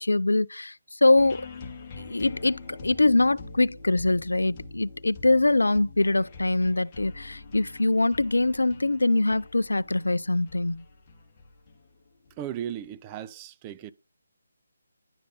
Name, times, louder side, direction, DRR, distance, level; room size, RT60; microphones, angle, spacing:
voice 1, 0.0-1.5 2.0-10.8, left 2 dB, 75° left, 0.4 m, -23 dB
sound 1, 1.2-12.9, left 3 dB, 25° left, 2.2 m, -45 dB
voice 2, 12.4-13.9, right 10 dB, 20° right, 0.5 m, -36 dB
11.0 x 5.1 x 4.2 m
figure-of-eight pair, 150°, 0 cm